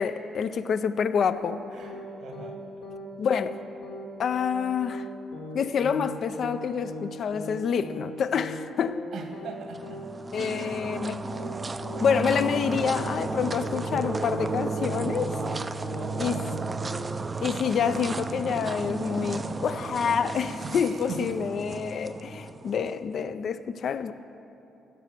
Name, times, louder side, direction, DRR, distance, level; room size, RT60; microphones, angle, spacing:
voice 1, 0.0-1.6 3.2-3.6 4.2-5.1 5.5-9.0 10.3-11.4 12.0-15.3 16.2-16.5 17.4-24.1, left 7 dB, 60° left, 0.4 m, -27 dB
sound 1, 1.3-1.6 1.8-2.1 2.3-2.6 2.8-3.1 3.3-3.6 3.8-4.1 4.3-4.6 4.8-5.1 5.3-5.6 5.8-6.1 6.3-6.6 6.8-7.1 7.3-7.6 7.8-8.1 8.3-8.6 8.8-9.1 9.3-9.6 9.8-10.1 10.3-10.6 10.8-11.1 11.3-11.6 11.8-12.1 12.3-12.6 12.8-13.1 13.3-13.6 13.8-14.1 14.3-14.6 14.8-15.1 15.3-15.6 15.8-16.1 16.3-16.6 16.8-17.1, left 2 dB, 85° left, 1.6 m, -39 dB
voice 2, 1.7-2.6 5.8-6.2 9.1-10.1 10.4-10.8 15.9-16.5 20.6-21.5, right 4 dB, 75° right, 1.4 m, -41 dB
sound 2, 9.7-23.0, right 3 dB, 30° right, 0.4 m, -33 dB
14.0 x 5.7 x 6.0 m
cardioid pair, 90°, 0 cm